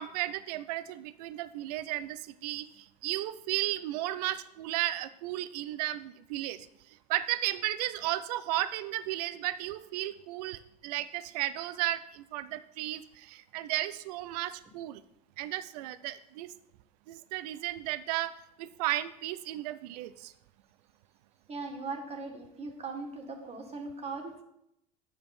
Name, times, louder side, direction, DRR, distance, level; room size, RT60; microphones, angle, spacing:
voice 1, 0.0-6.6 7.1-15.0 15.4-16.5 17.1-18.3 18.6-20.3, right 15 dB, 70° right, 15 dB, 0.5 m, -34 dB
voice 2, 21.5-24.4, right 3 dB, 30° right, 3 dB, 1.8 m, -39 dB
8.8 x 7.0 x 4.3 m, 0.78 s
hypercardioid pair, 80°, 21 cm